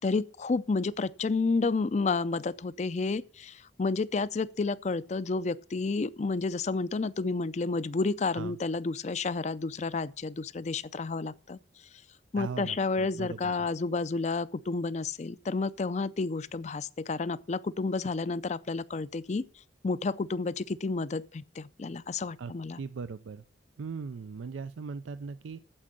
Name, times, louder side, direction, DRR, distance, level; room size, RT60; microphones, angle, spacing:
voice 1, 0.0-11.6 12.3-19.4 19.8-22.8, left 3 dB, 35° left, 0.4 m, -30 dB
voice 2, 12.4-13.5 22.4-23.4 23.8-25.6, right 5 dB, 90° right, 0.4 m, -39 dB
8.7 x 7.6 x 7.4 m
head